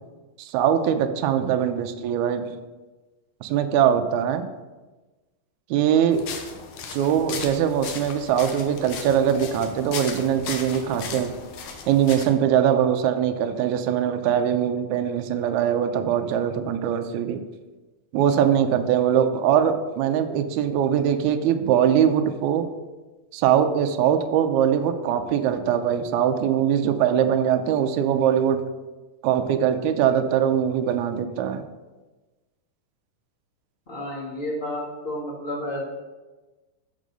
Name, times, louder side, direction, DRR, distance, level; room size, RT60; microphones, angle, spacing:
voice 1, 0.4-2.5 3.4-4.5 5.7-6.3 6.9-11.3 11.9-17.4 18.1-22.7 23.3-28.6 29.2-31.6, right 9 dB, 80° right, 7 dB, 1.7 m, -22 dB
sound 1, 6.1-12.3, left 6 dB, 70° left, 2.0 m, -37 dB
voice 2, 33.9-35.9, left 1 dB, 45° left, -4 dB, 0.7 m, -31 dB
6.5 x 6.2 x 5.3 m, 1.2 s
omnidirectional pair, 4.0 m